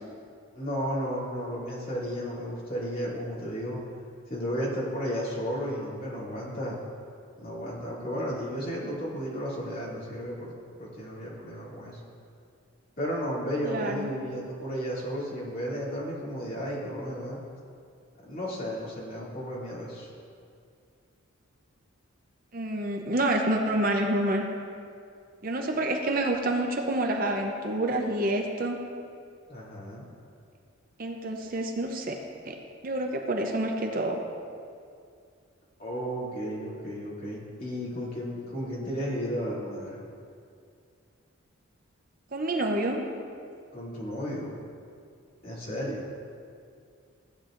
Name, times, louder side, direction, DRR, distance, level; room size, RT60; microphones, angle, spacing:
voice 1, 0.5-3.8 4.3-6.8 7.4-10.5 10.8-12.0 13.0-17.4 18.2-20.1 29.5-30.1 35.8-40.0 43.7-44.6 45.4-46.1, equal, 40° left, -7 dB, 2.6 m, -33 dB
voice 2, 13.6-14.1 22.5-24.4 25.4-28.8 31.0-32.2 32.5-32.6 32.8-34.2 42.3-43.0, right 1 dB, 40° right, 3 dB, 0.7 m, -28 dB
15.0 x 8.8 x 2.5 m, 2.3 s
head